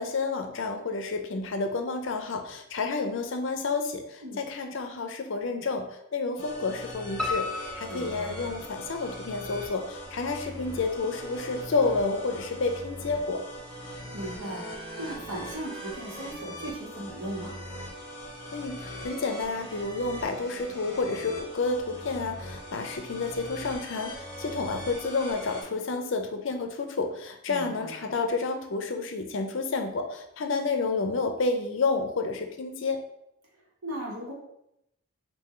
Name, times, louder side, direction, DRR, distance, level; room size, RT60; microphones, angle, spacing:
voice 1, 0.0-4.2 4.5-5.8 6.1-7.5 7.8-13.4 18.5-33.0, left 3 dB, 60° left, 5 dB, 0.5 m, -30 dB
sound 1, 6.4-25.6, equal, 20° left, 0.9 m, -41 dB
Piano, 7.2-9.1 9.5-10.4 10.7-10.8 11.3-11.4 11.6-11.7, left 3 dB, 5° left, 0.4 m, -35 dB
voice 2, 7.9-8.3 14.1-17.6 27.5-28.1 33.8-34.3, right 1 dB, 85° right, -3 dB, 1.4 m, -37 dB
4.2 x 2.7 x 3.8 m, 0.79 s
head